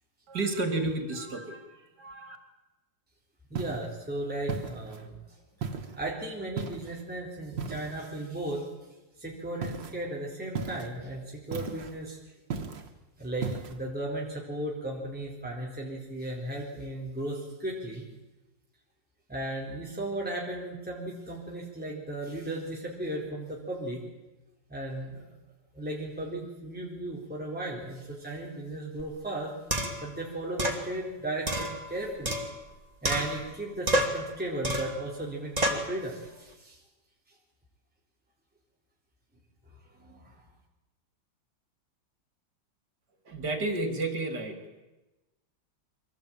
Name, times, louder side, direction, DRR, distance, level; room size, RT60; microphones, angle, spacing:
voice 1, 0.3-1.7 2.0-2.4 43.3-44.8, right 2 dB, 65° right, 6 dB, 3.7 m, -31 dB
voice 2, 3.5-5.1 5.6-5.7 6.0-8.7 9.2-12.2 13.2-18.0 19.3-24.0 24.7-25.2 25.7-29.5 30.0-32.4 33.0-36.8 39.9-40.4, right 1 dB, 5° right, -3 dB, 4.0 m, -36 dB
sound 1, 3.5-3.9 4.5-5.1 5.6-6.0 6.6-7.0 7.6-8.1 9.6-10.0 10.5-11.0 11.5-12.0 12.5-12.9 13.4-13.8, right 5 dB, 85° right, 2.5 m, -36 dB
sound 2, 29.0-29.1 29.7-30.1 30.6-30.8 31.5-32.7 33.0-33.6 33.9-34.3 34.6-35.0 35.6-35.9, right 1 dB, 20° right, 2.8 m, -29 dB
24.5 x 18.0 x 8.9 m, 1.1 s
omnidirectional pair, 2.0 m